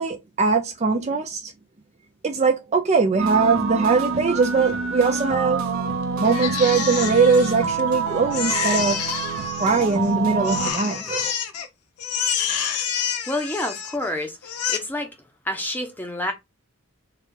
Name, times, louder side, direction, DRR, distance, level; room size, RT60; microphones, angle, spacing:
voice 1, 0.0-1.5 2.2-5.7 6.2-9.0 9.6-11.3, right 4 dB, 30° right, 0.4 m, -21 dB
sound 1, 3.2-10.7, right 5 dB, 70° right, 0.9 m, -27 dB
Crying sobbing, 6.2-7.9 8.3-10.1 10.4-11.7 12.0-14.1 14.4-14.8, left 8 dB, 90° left, 0.8 m, -28 dB
voice 2, 13.3-15.1 15.4-16.3, left 1 dB, 10° left, 0.8 m, -28 dB
4.3 x 2.4 x 3.7 m
head